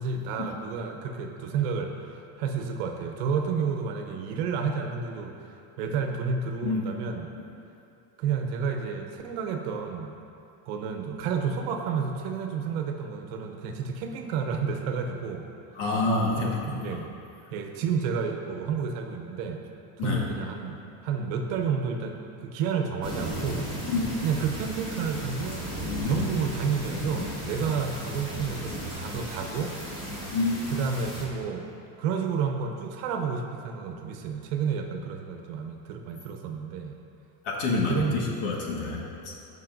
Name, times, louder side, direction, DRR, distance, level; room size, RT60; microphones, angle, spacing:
voice 1, 0.0-7.3 8.2-10.1 10.7-15.5 16.4-17.1 17.5-19.6 20.0-23.7 24.2-25.7 26.0-29.8 30.7-31.7 32.0-36.9 37.9-38.2, right 6 dB, 70° right, 4 dB, 1.0 m, -30 dB
voice 2, 15.8-16.9 20.0-20.2 23.9-24.1 26.0-26.1 30.3-30.6 37.5-39.3, left 3 dB, 60° left, -2 dB, 1.8 m, -28 dB
sound 1, 23.0-31.2, equal, 10° left, 2.1 m, -35 dB
15.0 x 5.6 x 2.7 m, 2.6 s
supercardioid pair, 140°, 44 cm